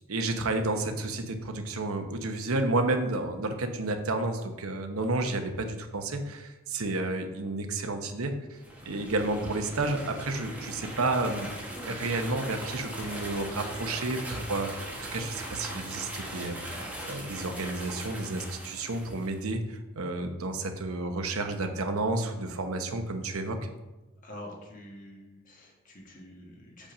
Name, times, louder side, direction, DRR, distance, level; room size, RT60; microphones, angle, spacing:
voice 1, 0.1-11.5 11.8-23.6, right 2 dB, 85° right, 6 dB, 0.9 m, -31 dB
sound 1, 8.5-19.3, right 1 dB, 5° right, 1.4 m, -40 dB
voice 2, 24.2-26.9, left 1 dB, 40° left, -1 dB, 1.6 m, -46 dB
7.0 x 5.3 x 5.0 m, 1.1 s
head